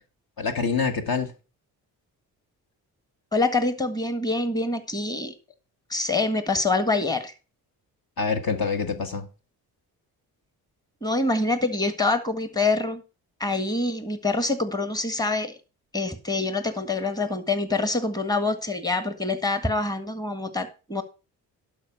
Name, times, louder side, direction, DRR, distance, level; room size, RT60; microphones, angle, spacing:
voice 1, 0.4-1.3 8.2-9.3, left 5 dB, 50° left, 1.6 m, -26 dB
voice 2, 3.3-5.3 5.9-7.3 11.0-13.0 13.4-15.5 15.9-21.0, left 2 dB, 10° left, 1.7 m, -25 dB
11.5 x 5.0 x 5.7 m
hypercardioid pair, 50°, 46 cm